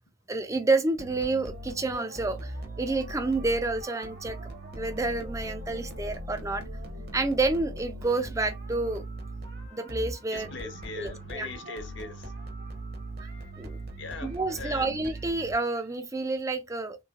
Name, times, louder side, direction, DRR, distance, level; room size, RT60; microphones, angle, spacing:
voice 1, 0.3-2.5 2.8-4.4 4.7-6.6 7.1-9.0 9.7-10.5 11.0-11.5 13.6-13.8 14.2-17.0, right 3 dB, 15° right, 0.4 m, -29 dB
sound 1, 1.0-15.9, right 1 dB, 50° right, 0.9 m, -40 dB
voice 2, 10.3-12.4 14.0-15.0, left 3 dB, 60° left, 0.7 m, -41 dB
3.2 x 3.1 x 2.3 m
head